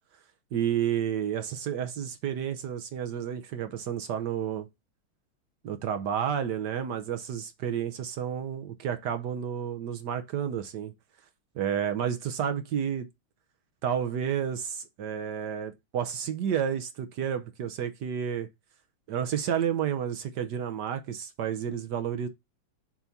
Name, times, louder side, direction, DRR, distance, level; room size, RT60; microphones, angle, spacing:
voice 1, 0.5-4.7 5.6-10.9 11.5-13.1 13.8-18.5 19.1-22.3, right 8 dB, 65° right, 1.2 m, -31 dB
7.0 x 2.7 x 5.7 m
omnidirectional pair, 2.2 m